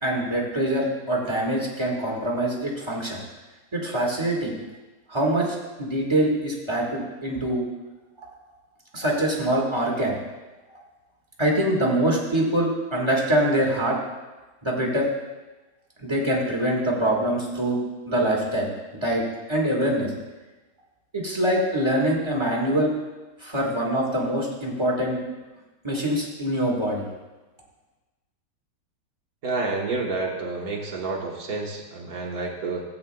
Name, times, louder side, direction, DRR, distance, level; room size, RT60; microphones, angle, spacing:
voice 1, 0.0-3.2 3.7-4.6 5.1-7.6 8.9-10.1 11.4-14.0 14.6-15.1 16.0-17.8 18.1-18.7 19.0-19.2 19.5-20.1 21.1-22.9 23.4-25.2 25.8-27.0, right 1 dB, 15° right, -3 dB, 1.4 m, -24 dB
voice 2, 29.4-32.8, right 3 dB, 50° right, -1 dB, 1.5 m, -29 dB
15.0 x 8.5 x 2.2 m, 1.2 s
omnidirectional pair, 2.2 m